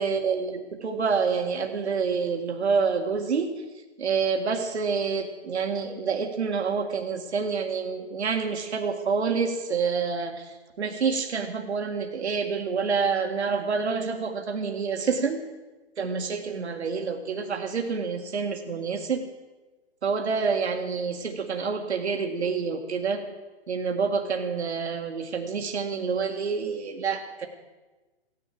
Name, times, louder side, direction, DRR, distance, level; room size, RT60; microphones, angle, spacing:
voice 1, 0.0-3.5 4.0-10.5 10.8-15.4 16.0-19.2 20.0-23.2 23.7-27.5, right 5 dB, 75° right, 4 dB, 1.9 m, -27 dB
16.5 x 10.5 x 7.7 m, 1.2 s
hypercardioid pair, 150°, 34 cm